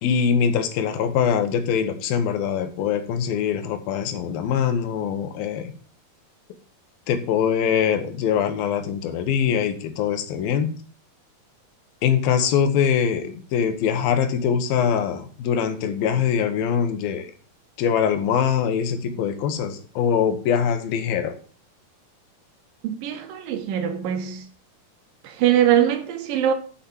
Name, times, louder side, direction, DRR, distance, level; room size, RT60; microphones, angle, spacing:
voice 1, 0.0-5.7 7.1-10.7 12.0-17.3 17.8-21.3, left 7 dB, 80° left, 2.9 m, -23 dB
voice 2, 22.8-24.4 25.2-26.5, right 10 dB, 70° right, 2.9 m, -22 dB
7.3 x 6.4 x 7.2 m
omnidirectional pair, 4.2 m